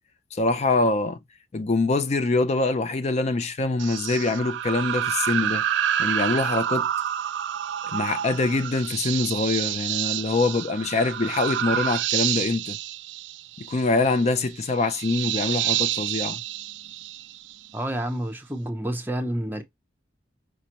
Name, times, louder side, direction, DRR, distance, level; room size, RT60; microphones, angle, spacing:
voice 1, 0.3-1.2 1.5-5.6 6.0-6.9 7.8-12.8 13.6-16.4, left 3 dB, 35° left, 0.4 m, -24 dB
sound 1, 3.8-17.7, right 11 dB, 80° right, 0.3 m, -28 dB
voice 2, 17.7-19.6, right 1 dB, 10° right, 0.6 m, -29 dB
5.1 x 2.1 x 2.8 m
head